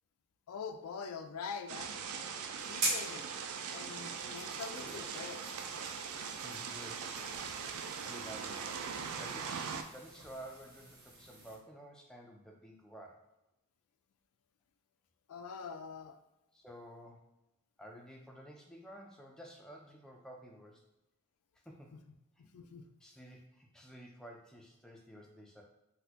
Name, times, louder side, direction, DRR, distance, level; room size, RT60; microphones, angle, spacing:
voice 1, 0.5-2.0 2.6-3.3 3.7-5.4 15.3-16.2 22.4-22.9, left 5 dB, 80° left, 7 dB, 0.3 m, -44 dB
sound 1, 1.7-9.8, right 6 dB, 80° right, 0.4 m, -41 dB
sound 2, 2.6-11.6, right 2 dB, 50° right, 1.1 m, -44 dB
voice 2, 6.4-7.5 8.0-13.3 16.5-17.3 17.8-20.8 21.7-21.9 22.4-22.5 23.0-25.6, equal, 5° left, 0 dB, 0.3 m, -52 dB
4.1 x 2.1 x 2.8 m, 0.95 s
head